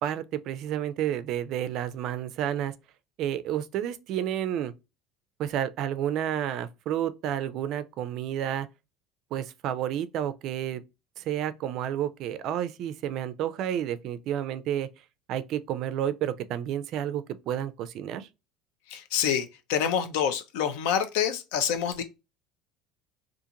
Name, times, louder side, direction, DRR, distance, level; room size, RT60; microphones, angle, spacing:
voice 1, 0.0-2.7 3.2-4.7 5.4-8.7 9.3-10.8 11.2-14.9 15.3-18.3, right 10 dB, 55° right, 0.3 m, -30 dB
voice 2, 18.9-22.0, left 8 dB, 80° left, 0.5 m, -27 dB
2.5 x 2.5 x 2.7 m
cardioid pair, 130°, 0 cm